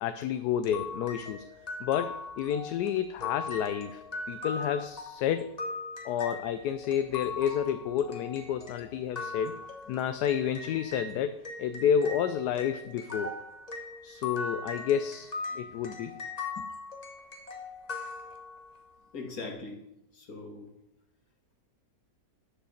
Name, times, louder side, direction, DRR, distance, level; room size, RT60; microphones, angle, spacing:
voice 1, 0.0-1.4 1.8-5.6 6.0-13.3 14.0-16.1 16.6-16.7, left 9 dB, 80° left, 10 dB, 1.1 m, -30 dB
sound 1, 0.6-11.1 11.4-18.8, left 4 dB, 30° left, 1.1 m, -40 dB
voice 2, 19.1-19.9 20.1-20.7, left 1 dB, 60° left, 1 dB, 2.3 m, -40 dB
10.0 x 5.0 x 6.6 m, 0.83 s
omnidirectional pair, 1.7 m